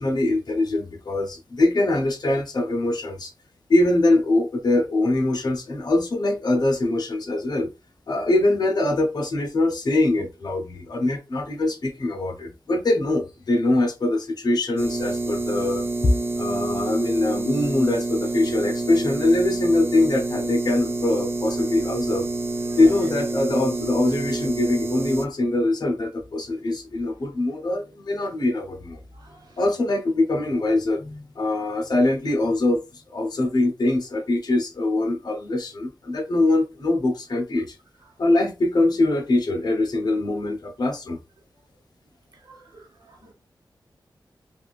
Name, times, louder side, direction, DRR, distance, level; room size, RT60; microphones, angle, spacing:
voice 1, 0.0-3.3 3.7-7.7 8.1-15.9 16.4-22.3 22.8-29.0 29.6-37.8 38.2-41.2, left 2 dB, 60° left, 0.9 m, -23 dB
sound 1, 14.8-25.3, right 2 dB, 30° right, 0.5 m, -28 dB
voice 2, 29.2-29.5 42.4-43.3, right 2 dB, 55° right, 1.1 m, -44 dB
3.5 x 2.5 x 2.4 m
wide cardioid pair, 105°, 8 cm